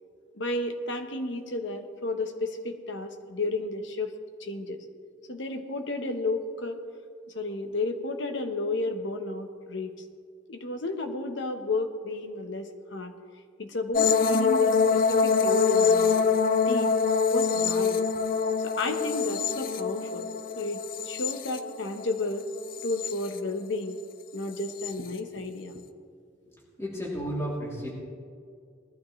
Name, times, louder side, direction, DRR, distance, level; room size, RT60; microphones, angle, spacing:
voice 1, 0.4-4.1 4.4-4.8 5.3-6.8 7.3-9.9 10.5-13.1 13.6-16.3 16.7-16.9 17.3-18.0 18.6-20.3 20.6-20.8 21.1-22.5 22.8-24.0 24.3-25.7, left 2 dB, 65° left, 6 dB, 1.1 m, -32 dB
sound 1, 13.9-22.1 22.5-23.4 24.6-24.9, left 5 dB, 45° left, 0.5 m, -25 dB
voice 2, 26.5-27.9, equal, 15° left, -6 dB, 3.0 m, -33 dB
20.0 x 12.5 x 3.2 m, 2.2 s
head